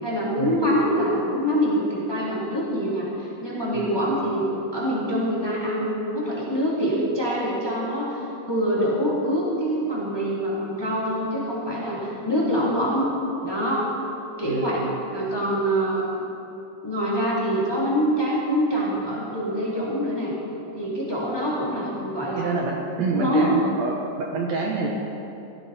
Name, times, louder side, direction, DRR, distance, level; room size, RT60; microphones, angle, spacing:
voice 1, 0.0-13.1 13.4-13.9 14.4-16.2 16.8-20.3 20.8-22.6 23.1-23.5, equal, 10° left, -7 dB, 2.8 m, -25 dB
voice 2, 14.4-15.0 22.4-24.9, right 3 dB, 65° right, -1 dB, 2.2 m, -28 dB
17.5 x 15.0 x 4.3 m, 2.9 s
omnidirectional pair, 3.7 m